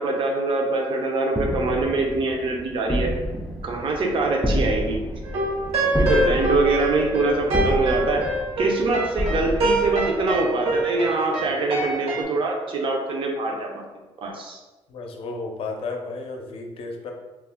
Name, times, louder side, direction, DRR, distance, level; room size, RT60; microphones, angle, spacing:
voice 1, 0.0-3.1 3.6-5.0 5.9-8.2 8.6-13.8 14.2-14.6, right 3 dB, 55° right, 1 dB, 0.6 m, -24 dB
sound 1, 1.3-10.6, equal, ahead, 0.3 m, -29 dB
sound 2, 5.2-12.2, right 2 dB, 80° right, 0.8 m, -25 dB
voice 2, 14.9-17.1, left 3 dB, 60° left, 2 dB, 0.5 m, -33 dB
2.3 x 2.1 x 3.4 m, 1.1 s
cardioid pair, 115°, 10 cm